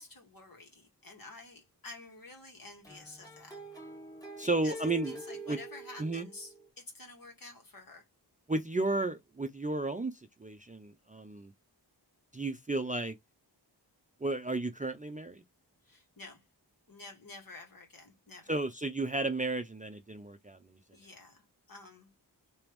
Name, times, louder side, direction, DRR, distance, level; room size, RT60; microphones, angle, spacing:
voice 1, 0.0-3.6 4.4-8.0 15.8-16.4 16.9-18.6 20.9-22.1, left 3 dB, 55° left, 1.7 m, -50 dB
sound 1, 2.8-6.7, right 1 dB, 10° left, 1.5 m, -46 dB
voice 2, 4.4-5.2 5.5-5.6 6.0-6.3 8.5-11.5 12.3-13.2 14.2-15.4 18.5-20.7, right 2 dB, 20° right, 0.5 m, -33 dB
3.4 x 2.9 x 3.1 m
wide cardioid pair, 80°, 42 cm